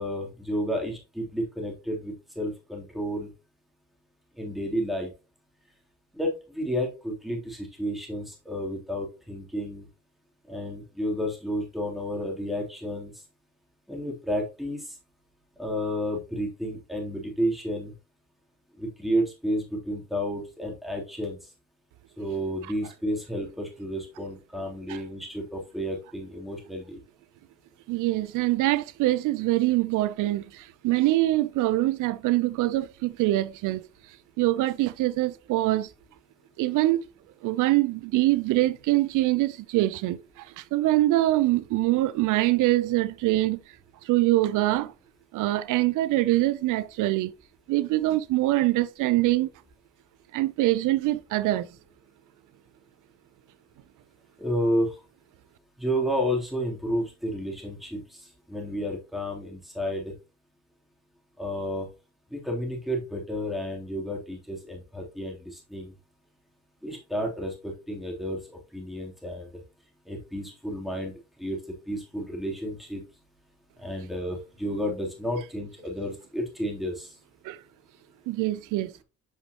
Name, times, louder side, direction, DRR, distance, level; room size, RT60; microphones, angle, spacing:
voice 1, 0.0-3.3 4.4-5.1 6.1-9.9 10.5-13.1 13.9-14.9 15.6-17.9 18.8-21.4 22.2-27.0 54.4-54.9 55.8-58.2 58.5-60.1 61.4-61.9 62.3-65.9 66.8-68.4 68.7-69.6 70.1-71.1 71.4-71.6 71.9-73.0 73.8-77.1, equal, ahead, 3.1 m, -31 dB
voice 2, 27.9-33.8 34.4-35.9 36.6-37.1 37.4-43.6 44.0-44.9 45.3-47.3 47.7-49.5 50.3-51.7 77.4-77.6 78.3-78.9, right 17 dB, 90° right, 0.5 m, -24 dB
8.3 x 5.5 x 2.9 m
cardioid pair, 90°, 30 cm